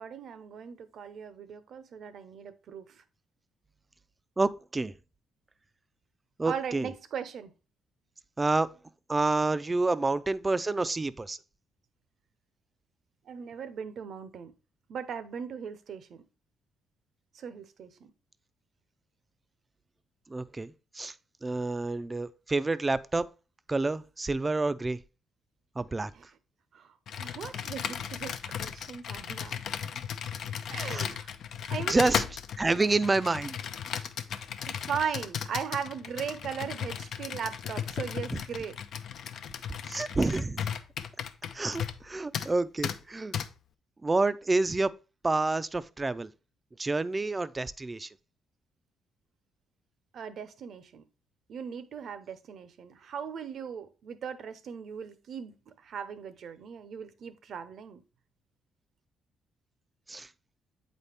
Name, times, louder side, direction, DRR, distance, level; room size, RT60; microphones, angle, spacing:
voice 1, 0.0-3.0 6.4-7.5 13.3-14.5 14.9-16.2 17.3-18.1 26.1-26.3 26.7-30.0 30.7-31.3 31.7-32.3 34.6-38.7 50.1-51.0 51.5-58.0, right 7 dB, 65° right, 0.7 m, -38 dB
voice 2, 4.4-4.9 6.4-6.9 8.4-8.7 9.1-11.4 20.3-21.1 21.4-23.3 23.7-25.0 25.8-26.1 30.9-31.1 31.9-32.2 32.6-33.6 38.3-38.4 39.9-40.6 41.5-43.3 44.0-44.9 45.2-46.3 46.8-48.1 60.1-60.3, right 3 dB, 20° right, 0.4 m, -28 dB
Computer keyboard, 27.1-42.1 42.3-42.5 42.8-43.0 43.3-43.5, left 8 dB, 70° left, 0.5 m, -36 dB
8.0 x 4.2 x 3.4 m
cardioid pair, 90°, 0 cm